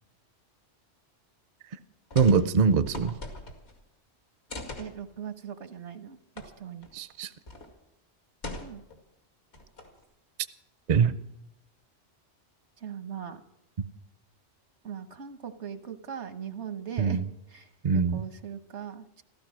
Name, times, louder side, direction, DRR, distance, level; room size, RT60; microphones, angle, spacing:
sound 1, 2.1-2.4 2.7-3.8 4.5-4.9 6.4-6.5 6.8-6.9 7.5-7.7 8.4-9.0 9.5-10.0, left 2 dB, 70° left, 2.5 m, -40 dB
voice 1, 2.1-3.2 6.9-7.3 10.9-11.1 13.8-13.9 17.0-17.2 17.8-18.2, right 5 dB, 45° right, 13 dB, 0.6 m, -23 dB
voice 2, 4.8-6.2 6.6-6.9 8.6-8.8 12.8-13.4 14.8-17.2 17.5-19.2, right 8 dB, 85° right, 10 dB, 1.4 m, -39 dB
15.0 x 13.5 x 6.2 m, 0.84 s
omnidirectional pair, 1.2 m